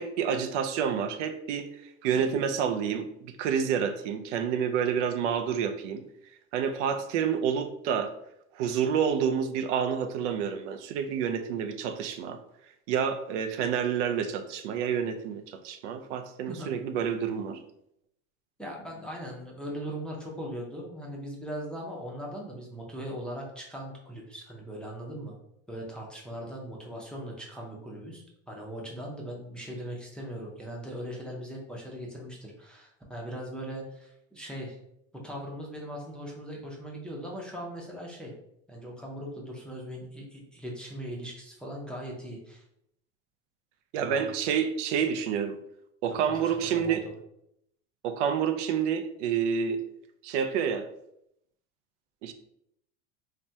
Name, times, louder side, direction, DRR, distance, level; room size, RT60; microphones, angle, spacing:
voice 1, 0.0-6.0 6.5-8.1 8.5-12.4 12.9-17.6 43.9-45.6 46.0-47.0 48.0-49.8 50.2-50.9 52.2-52.3, right 7 dB, 75° right, 8 dB, 0.5 m, -28 dB
voice 2, 18.6-25.3 25.7-34.8 35.1-38.3 38.7-42.6 44.0-44.3 46.3-47.0, equal, 5° left, -3 dB, 0.5 m, -39 dB
3.3 x 2.2 x 2.6 m, 0.77 s
supercardioid pair, 120°, 35 cm